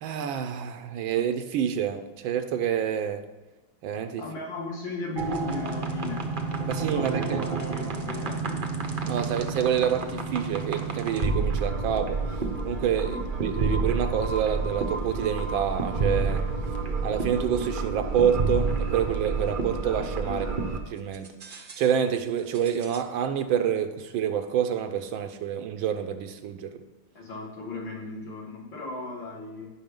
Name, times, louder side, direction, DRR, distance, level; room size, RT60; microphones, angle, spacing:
voice 1, 0.0-3.2 3.8-4.2 6.7-7.5 9.0-12.2 12.7-16.4 17.0-20.5 20.9-26.8, right 8 dB, 85° right, 9 dB, 1.5 m, -27 dB
voice 2, 4.2-6.3 6.9-8.6 13.1-13.2 20.2-20.7 27.1-29.7, left 3 dB, 75° left, -2 dB, 2.8 m, -36 dB
sound 1, 5.2-20.8 21.1-21.9 22.5-23.0, right 4 dB, 45° right, 0.6 m, -29 dB
14.5 x 5.7 x 3.8 m, 1.2 s
omnidirectional pair, 2.1 m